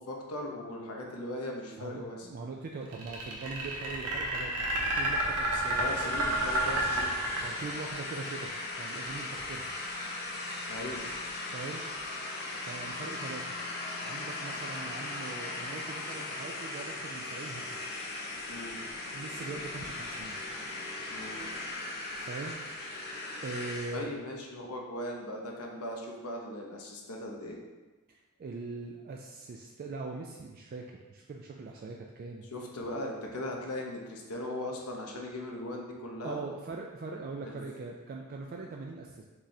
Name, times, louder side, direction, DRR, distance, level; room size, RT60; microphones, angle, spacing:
voice 1, 0.0-2.3 5.5-7.2 10.7-11.0 18.5-18.8 21.1-21.4 23.9-27.6 32.5-36.4 37.4-37.6 38.5-38.6, left 1 dB, 90° left, 0 dB, 0.9 m, -39 dB
voice 2, 1.8-4.5 4.9-6.1 6.6-6.8 7.4-8.5 8.8-9.7 11.5-11.8 12.6-13.6 14.0-17.6 19.1-20.4 22.2-22.6 23.4-24.3 28.1-32.5 36.2-39.3, right 3 dB, 40° right, 0 dB, 0.3 m, -41 dB
sound 1, 2.9-8.0, right 1 dB, 90° right, 0.9 m, -30 dB
sound 2, 4.7-24.0, left 2 dB, 45° left, 0.7 m, -38 dB
5.9 x 3.2 x 2.7 m, 1.2 s
head